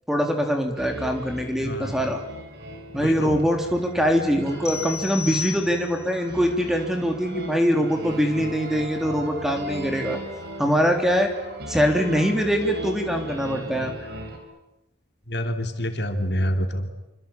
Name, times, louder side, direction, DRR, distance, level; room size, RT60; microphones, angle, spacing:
voice 1, 0.1-2.2 2.9-10.2 10.6-11.3 11.7-14.1, equal, ahead, 4 dB, 3.4 m, -23 dB
sound 1, 0.8-14.4, right 1 dB, 60° right, 5.8 m, -37 dB
voice 2, 1.6-2.0 3.0-3.3 15.3-16.9, equal, 65° left, 5 dB, 3.1 m, -27 dB
sound 2, 4.6-6.2, left 7 dB, 15° left, 1.0 m, -33 dB
26.5 x 25.0 x 8.6 m, 0.94 s
head